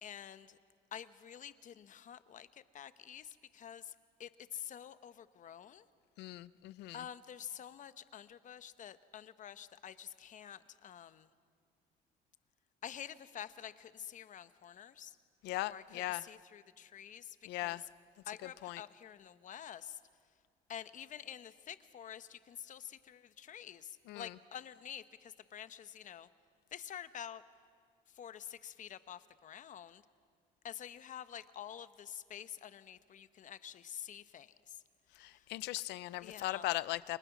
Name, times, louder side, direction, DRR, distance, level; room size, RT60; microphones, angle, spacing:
voice 1, 0.0-0.6 0.9-5.8 6.9-11.3 12.8-15.2 15.7-17.8 18.3-20.0 20.7-26.3 26.7-27.4 28.1-30.0 30.6-34.8 35.3-35.4 36.2-36.7, left 9 dB, 50° left, 13 dB, 0.9 m, -48 dB
voice 2, 6.2-7.0 15.4-16.2 17.5-17.8 18.6-18.8 24.1-24.3 35.2-37.2, left 17 dB, 85° left, 18 dB, 0.6 m, -38 dB
29.5 x 23.0 x 6.1 m, 2.1 s
cardioid pair, 110°, 17 cm